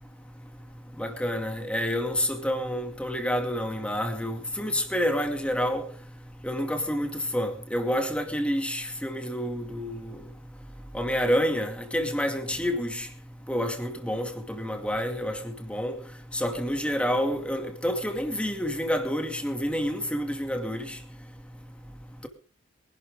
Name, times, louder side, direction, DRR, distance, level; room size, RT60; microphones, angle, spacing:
voice 1, 1.0-5.8 6.4-7.1 7.3-10.2 10.9-13.1 13.5-15.4 15.7-16.0 16.3-21.0, equal, 5° left, 2.4 m, -28 dB
24.0 x 12.0 x 3.8 m
head